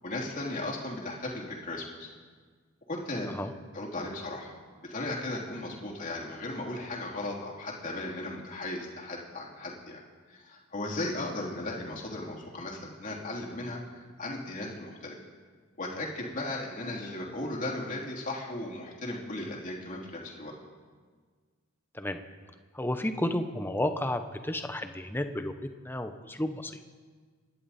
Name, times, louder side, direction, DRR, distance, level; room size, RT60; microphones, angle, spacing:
voice 1, 0.0-2.1 2.9-3.3 3.7-4.5 4.8-10.0 10.3-13.8 14.2-15.2 15.8-20.5, left 2 dB, 40° left, -2 dB, 3.0 m, -36 dB
voice 2, 22.7-25.5 25.8-26.8, left 1 dB, 10° left, 8 dB, 0.8 m, -32 dB
27.5 x 11.0 x 4.2 m, 1.5 s
head